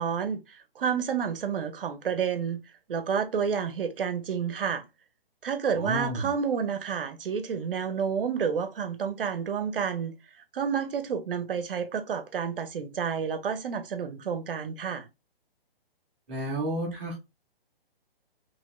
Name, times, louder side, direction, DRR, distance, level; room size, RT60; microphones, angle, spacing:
voice 1, 0.0-4.8 5.4-10.1 10.5-15.1, right 7 dB, 65° right, 0.6 m, -30 dB
voice 2, 5.7-6.3 16.3-17.2, right 1 dB, 10° right, 0.5 m, -31 dB
2.9 x 2.8 x 2.9 m
hypercardioid pair, 160°, 30 cm